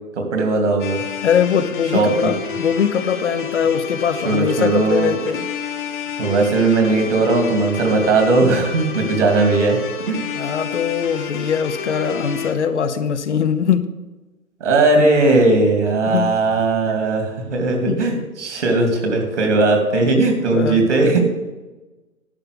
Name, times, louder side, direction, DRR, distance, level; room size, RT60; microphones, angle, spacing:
voice 1, 0.3-1.0 1.9-2.3 4.2-5.2 6.2-9.8 10.1-10.3 14.6-21.4, right 3 dB, 55° right, 3 dB, 3.0 m, -18 dB
sound 1, 0.8-12.5, left 6 dB, 35° left, 1.2 m, -30 dB
voice 2, 1.2-5.5 10.3-13.9 16.1-16.3 16.9-17.0 17.9-18.0 20.5-20.9, left 7 dB, 55° left, 10 dB, 0.9 m, -21 dB
10.5 x 5.6 x 8.5 m, 1.1 s
figure-of-eight pair, 145°, 42 cm